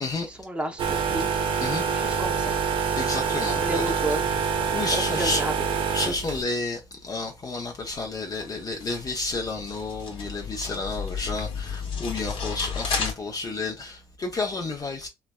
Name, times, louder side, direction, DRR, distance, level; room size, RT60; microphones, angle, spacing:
voice 1, 0.2-1.3 1.9-2.6 3.6-4.2 4.9-5.5, right 1 dB, 10° right, 0.7 m, -31 dB
sound 1, 0.8-6.4, right 6 dB, 50° right, 0.7 m, -26 dB
voice 2, 3.0-3.9 4.7-5.4 5.9-15.1, left 3 dB, 35° left, 0.6 m, -31 dB
sound 2, 7.7-13.1, left 5 dB, 55° left, 0.9 m, -33 dB
3.2 x 2.1 x 2.2 m
supercardioid pair, 80°, 11 cm